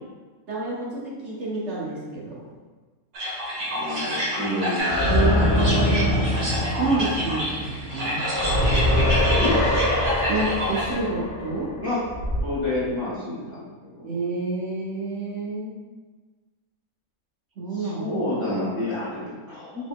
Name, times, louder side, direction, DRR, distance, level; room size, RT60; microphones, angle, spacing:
voice 1, 0.5-2.4 5.1-6.3 6.8-8.2 10.3-11.7 14.0-15.7 17.6-18.1, right 3 dB, 55° right, -5 dB, 1.1 m, -28 dB
sound 1, 3.1-10.9, equal, 80° right, 1.7 m, -29 dB
voice 2, 3.7-5.5 9.4-9.6 11.8-12.0 12.4-13.7 13.9-14.1 17.7-19.9, left 1 dB, 15° right, -11 dB, 0.9 m, -29 dB
sound 2, 4.8-12.4, left 1 dB, 5° left, 1.3 m, -23 dB
4.0 x 3.9 x 2.2 m, 1.3 s
omnidirectional pair, 1.5 m